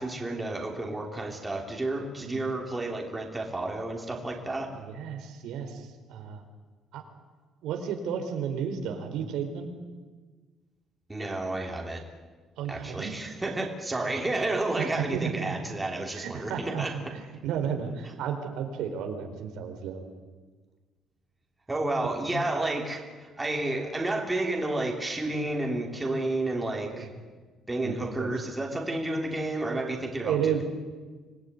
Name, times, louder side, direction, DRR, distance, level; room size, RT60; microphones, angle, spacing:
voice 1, 0.0-4.7 11.1-12.0 12.7-16.9 21.7-27.1 27.7-30.6, right 2 dB, 10° right, 1 dB, 3.2 m, -31 dB
voice 2, 4.7-6.5 6.9-7.0 7.6-9.7 12.6-13.2 14.8-15.5 16.1-20.1 22.0-22.3 26.9-27.1 27.8-28.3 30.2-30.6, right 8 dB, 90° right, 4 dB, 4.3 m, -33 dB
26.0 x 19.5 x 9.7 m, 1.4 s
cardioid pair, 160°, 0 cm